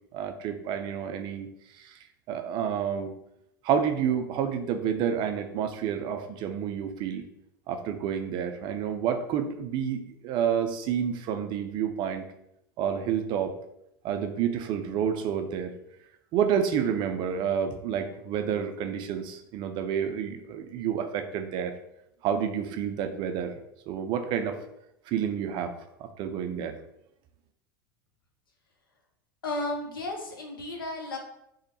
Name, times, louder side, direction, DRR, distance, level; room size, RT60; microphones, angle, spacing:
voice 1, 0.1-1.5 1.8-2.0 2.3-3.1 3.6-7.3 7.7-12.3 12.8-13.6 14.0-15.7 16.3-21.7 22.2-23.5 23.9-24.6 25.1-25.7 26.0-26.7, right 8 dB, 45° right, 7 dB, 0.3 m, -29 dB
voice 2, 29.4-31.2, left 2 dB, 80° left, 1 dB, 0.6 m, -33 dB
3.0 x 2.0 x 2.8 m, 0.79 s
figure-of-eight pair, 80°, 11 cm